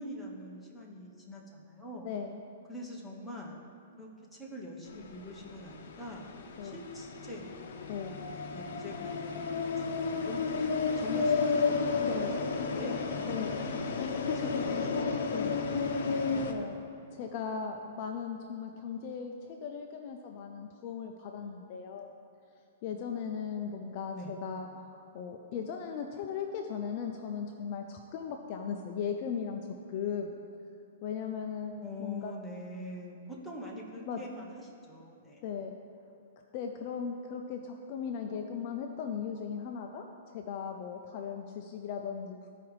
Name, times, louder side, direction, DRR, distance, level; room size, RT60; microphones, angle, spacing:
voice 1, 0.0-2.1 2.7-3.6 4.0-6.3 6.6-12.0 12.7-13.7 14.4-15.1 24.1-24.3 31.8-35.4, equal, ahead, -4 dB, 0.7 m, -44 dB
voice 2, 2.0-2.4 6.6-6.8 7.9-8.2 12.0-12.4 13.2-13.5 14.0-14.5 15.3-15.6 16.3-22.1 22.8-30.4 31.0-31.7 32.0-32.3 34.0-34.4 35.4-35.7 36.5-40.1 40.3-42.5, left 7 dB, 30° left, 3 dB, 0.4 m, -37 dB
sound 1, 4.9-16.5, left 4 dB, 60° left, 0.7 m, -32 dB
13.5 x 4.8 x 3.1 m, 2.5 s
hypercardioid pair, 175°, 0 cm